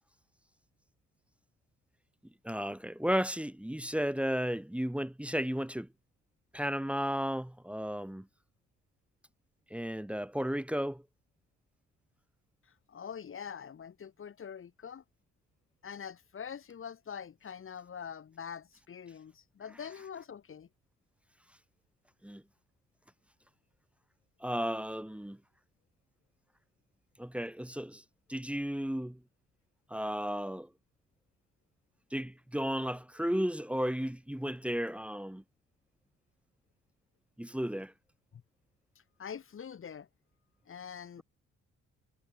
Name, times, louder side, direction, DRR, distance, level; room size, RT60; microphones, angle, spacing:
voice 1, 2.4-5.9 6.5-8.3 9.7-11.0 22.2-22.4 24.4-25.4 27.2-28.0 28.3-29.2 29.9-30.7 32.1-35.4 37.4-37.9, equal, 5° right, 1.6 m, -34 dB
voice 2, 12.9-15.0 15.8-20.7 38.3-38.4 39.2-40.1 40.7-41.2, left 7 dB, 45° left, 1.6 m, -44 dB
cardioid pair, 90°, 30 cm